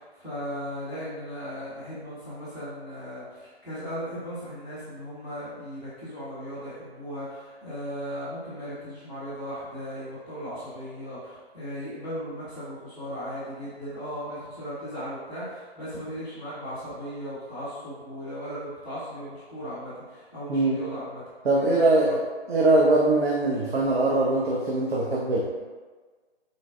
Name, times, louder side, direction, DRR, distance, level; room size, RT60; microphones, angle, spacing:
voice 1, 0.0-21.2 21.5-22.2, equal, 5° right, -17 dB, 0.8 m, -37 dB
voice 2, 21.4-22.1 22.5-25.4, right 2 dB, 70° right, -4 dB, 0.6 m, -22 dB
3.8 x 2.0 x 2.3 m, 1.4 s
figure-of-eight pair, 150°, 33 cm